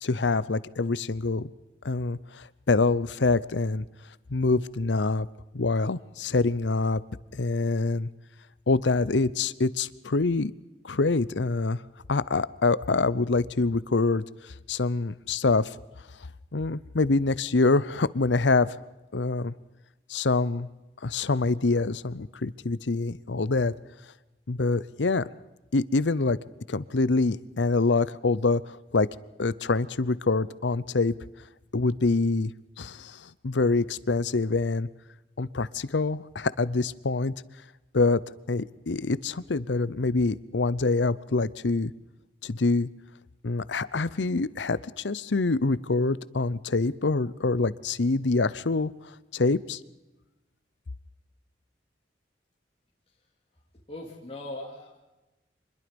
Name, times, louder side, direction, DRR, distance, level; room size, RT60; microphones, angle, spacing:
voice 1, 0.0-1.5 1.8-3.8 4.3-5.3 5.5-7.0 7.3-8.1 8.7-10.5 10.8-11.8 12.1-14.2 14.7-15.7 16.5-18.7 19.1-19.5 20.1-20.7 21.0-23.7 24.5-25.2 25.7-26.4 26.7-29.1 29.4-31.1 31.7-32.5 32.8-34.9 35.4-37.3 37.9-38.2 38.5-41.9 42.4-42.9 43.4-48.9 49.3-49.8, left 3 dB, 85° left, 18 dB, 0.8 m, -25 dB
voice 2, 53.9-55.0, left 1 dB, 35° left, -3 dB, 3.1 m, -39 dB
25.5 x 21.0 x 5.3 m, 1.0 s
head